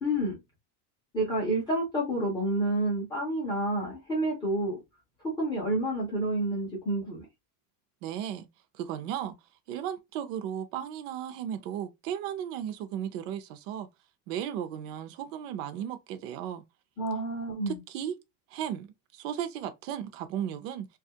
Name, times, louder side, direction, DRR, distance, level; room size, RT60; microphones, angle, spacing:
voice 1, 0.0-0.4 1.1-4.8 5.2-7.3 17.0-17.8, right 1 dB, 10° left, 0.4 m, -29 dB
voice 2, 8.0-8.5 8.7-9.3 9.7-13.9 14.3-16.6 17.7-18.2 18.5-18.9 19.1-20.9, right 10 dB, 60° right, 0.6 m, -35 dB
2.8 x 2.3 x 2.7 m
supercardioid pair, 165°, 45 cm